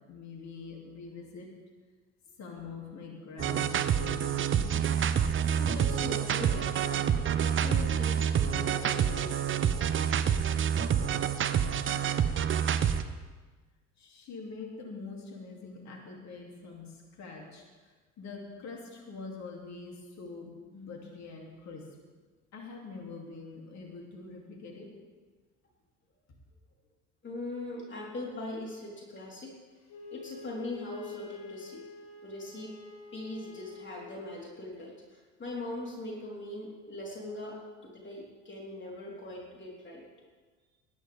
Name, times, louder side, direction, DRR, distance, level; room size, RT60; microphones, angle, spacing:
voice 1, 0.0-1.5 2.4-4.7 14.0-17.6 18.2-21.9 22.5-24.9, left 4 dB, 45° left, 0 dB, 2.9 m, -44 dB
sound 1, 3.4-13.0, right 8 dB, 30° right, 0.8 m, -27 dB
voice 2, 5.4-9.8 27.2-29.6 30.1-31.8 32.2-32.8 33.1-40.0, left 2 dB, 30° left, -2 dB, 4.0 m, -41 dB
Wind instrument woodwind instrument, 29.9-34.4, left 6 dB, 65° left, 4.8 m, -47 dB
20.0 x 11.0 x 3.6 m, 1.3 s
hypercardioid pair, 65°, 37 cm